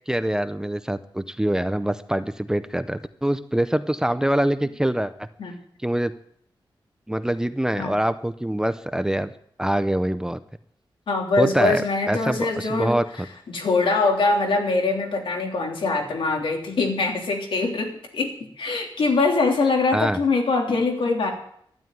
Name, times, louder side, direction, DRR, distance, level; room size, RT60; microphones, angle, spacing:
voice 1, 0.1-5.3 5.8-6.1 7.1-9.3 9.6-10.4 11.4-13.0 19.9-20.2, right 1 dB, 5° right, 12 dB, 0.6 m, -24 dB
voice 2, 11.1-18.3 18.6-21.3, left 3 dB, 90° left, 1 dB, 3.3 m, -23 dB
12.5 x 11.0 x 9.2 m, 0.69 s
wide cardioid pair, 175°, 9 cm